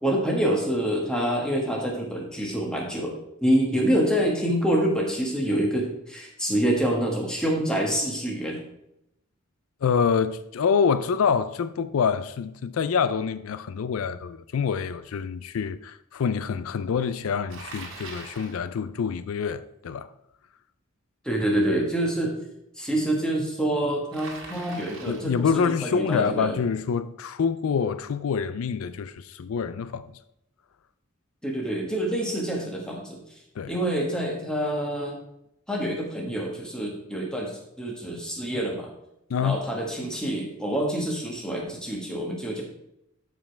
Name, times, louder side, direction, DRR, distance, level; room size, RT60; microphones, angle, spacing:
voice 1, 0.0-8.6 21.2-22.3 22.8-26.6 31.4-33.2 33.7-35.2 35.7-38.9 39.4-42.6, right 1 dB, 5° left, 1.6 m, -26 dB
voice 2, 9.8-20.1 25.1-30.1 33.6-33.7 39.3-39.6, left 6 dB, 80° left, 0.4 m, -26 dB
Bicycle, 17.5-18.6 24.1-25.4, right 3 dB, 60° right, 1.7 m, -41 dB
12.5 x 5.2 x 3.4 m
head